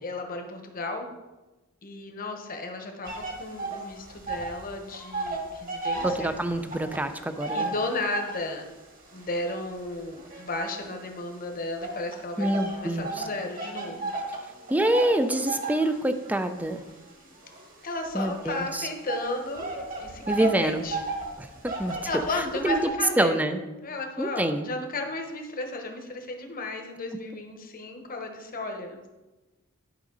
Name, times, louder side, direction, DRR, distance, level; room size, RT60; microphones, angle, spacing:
voice 1, 0.0-1.1 1.8-6.3 7.5-8.6 9.1-12.5 12.8-14.1 17.8-19.7 20.0-21.0 22.0-23.4 23.8-29.1, left 2 dB, 40° left, 4 dB, 1.1 m, -34 dB
sound 1, 3.0-4.6 4.9-8.5 9.1-11.2 11.8-22.9, right 2 dB, 40° right, 1.6 m, -34 dB
voice 2, 6.0-7.7 12.4-13.2 14.7-16.8 18.1-18.9 20.3-20.8 21.4-22.0 22.6-23.6 24.2-24.7, right 1 dB, 5° right, 9 dB, 0.5 m, -26 dB
11.0 x 5.2 x 3.9 m, 1.1 s
head